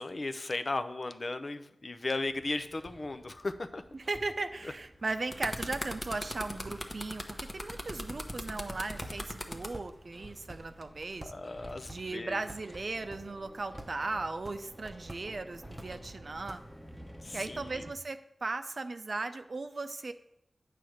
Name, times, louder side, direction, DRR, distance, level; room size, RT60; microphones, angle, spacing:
voice 1, 0.0-3.8 11.2-12.4 17.2-17.8, left 2 dB, 55° left, 10 dB, 0.5 m, -36 dB
Hammer, 2.2-17.9, equal, 10° left, 1.1 m, -52 dB
voice 2, 3.9-11.3 11.9-16.6 17.3-20.1, right 3 dB, 60° right, 9 dB, 0.5 m, -37 dB
sound 1, 5.0-9.7 10.6-10.8, left 1 dB, 35° left, 0.9 m, -39 dB
sound 2, 7.4-17.0, right 1 dB, 15° right, 0.8 m, -51 dB
8.5 x 3.3 x 6.4 m, 0.84 s
cardioid pair, 45°, 0 cm